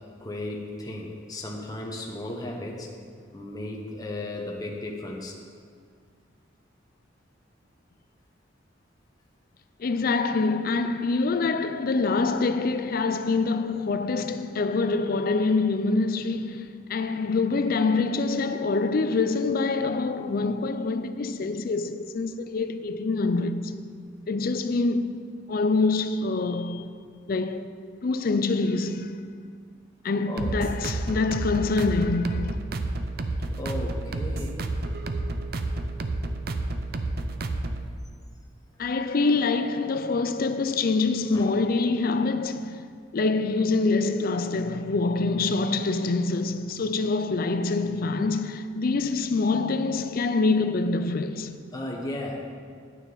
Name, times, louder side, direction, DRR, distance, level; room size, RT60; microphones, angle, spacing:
voice 1, 0.0-2.9 3.3-5.3 30.3-30.6 33.5-34.6 41.3-41.5 51.7-52.5, left 1 dB, 20° left, 0.9 m, -35 dB
voice 2, 9.8-23.8 24.3-25.2 25.5-26.9 27.3-27.7 28.0-29.2 30.0-32.6 38.8-42.9 43.1-51.6, left 3 dB, 50° left, 0.4 m, -25 dB
sound 1, 30.4-37.9, right 2 dB, 55° right, 0.5 m, -30 dB
9.2 x 8.9 x 3.9 m
head